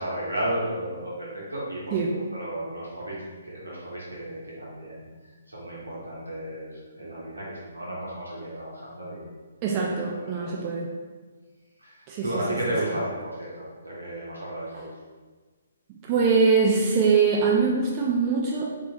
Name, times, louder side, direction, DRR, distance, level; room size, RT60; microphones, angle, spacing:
voice 1, 0.0-1.9 2.3-5.0 5.5-9.3 10.2-10.6 11.8-14.9, right 1 dB, 85° right, -5 dB, 1.1 m, -33 dB
voice 2, 9.6-10.9 12.1-12.3 12.9-13.0 16.1-18.7, right 5 dB, 30° right, -2 dB, 0.4 m, -23 dB
3.0 x 2.9 x 2.9 m, 1.4 s
figure-of-eight pair, 130°, 0 cm